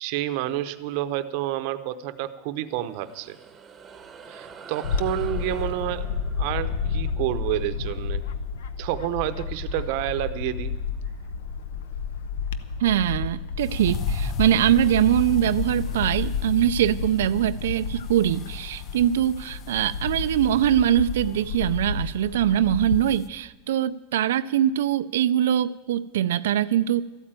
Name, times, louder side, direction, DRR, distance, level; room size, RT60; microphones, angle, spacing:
voice 1, 0.0-3.4 4.3-6.0 6.4-8.2 8.8-10.7, right 13 dB, 50° right, 12 dB, 0.8 m, -29 dB
sound 1, 2.7-9.5, right 5 dB, 15° right, 1.0 m, -47 dB
Bird / Wind, 4.8-23.1, left 5 dB, 85° left, 0.8 m, -31 dB
voice 2, 12.8-27.0, right 11 dB, 90° right, 11 dB, 0.4 m, -22 dB
sound 2, 13.6-23.3, left 8 dB, 30° left, 0.4 m, -39 dB
13.5 x 8.8 x 8.9 m, 1.1 s
supercardioid pair, 160°, 0 cm